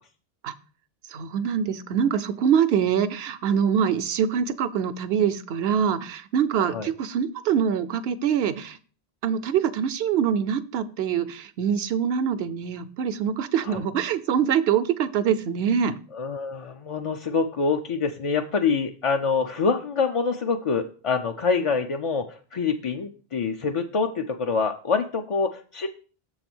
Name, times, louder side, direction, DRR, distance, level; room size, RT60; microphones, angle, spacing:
voice 1, 1.1-8.8 9.2-16.0, right 8 dB, 75° right, 12 dB, 0.8 m, -24 dB
voice 2, 16.1-25.9, left 5 dB, 45° left, 5 dB, 0.4 m, -26 dB
6.9 x 4.0 x 6.0 m, 0.39 s
omnidirectional pair, 1.0 m